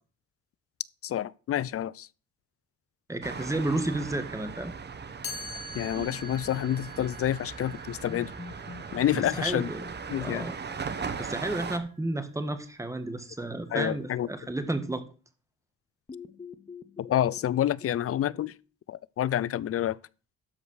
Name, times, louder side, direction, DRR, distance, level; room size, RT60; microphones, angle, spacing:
voice 1, 1.0-2.1 5.7-8.3 8.9-9.7 10.1-10.5 13.7-14.3 17.0-18.5 18.9-20.0, left 11 dB, 50° left, 0.5 m, -28 dB
voice 2, 3.1-4.7 9.1-9.9 10.2-10.5 11.2-15.1, right 2 dB, 10° right, 1.7 m, -32 dB
sound 1, 3.2-11.8, right 5 dB, 35° right, 1.2 m, -39 dB
Chime, 5.2-11.1, left 1 dB, 70° left, 3.2 m, -45 dB
sound 2, 8.1-12.1 16.1-18.5, left 5 dB, 20° left, 0.8 m, -47 dB
12.5 x 5.0 x 6.3 m
cardioid pair, 90°, 30 cm